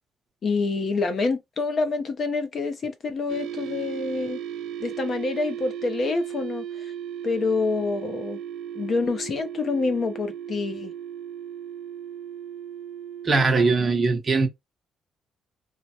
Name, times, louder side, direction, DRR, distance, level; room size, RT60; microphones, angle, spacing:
voice 1, 0.4-4.4 4.8-6.9 7.2-8.4 8.7-10.9, left 3 dB, 35° left, 0.6 m, -27 dB
sound 1, 3.3-13.6, right 9 dB, 85° right, 0.4 m, -36 dB
voice 2, 13.2-14.5, right 3 dB, 25° right, 0.9 m, -20 dB
3.2 x 2.1 x 4.2 m
cardioid pair, 165°, 0 cm